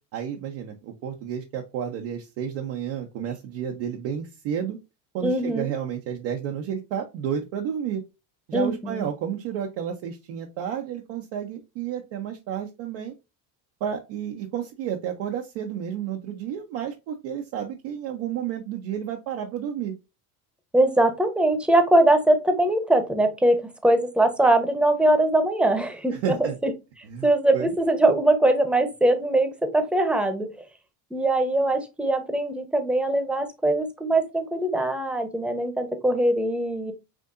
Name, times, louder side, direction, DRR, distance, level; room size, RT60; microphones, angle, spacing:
voice 1, 0.1-4.8 5.1-8.0 8.5-13.1 13.8-19.9 26.1-26.6 27.1-27.3 27.5-27.7, right 8 dB, 70° right, 1 dB, 1.0 m, -31 dB
voice 2, 5.2-5.7 8.5-9.0 20.7-26.4 26.6-26.7 27.2-30.5 31.1-36.9, right 1 dB, ahead, 8 dB, 0.9 m, -22 dB
6.2 x 2.7 x 2.5 m, 0.25 s
supercardioid pair, 85°, 46 cm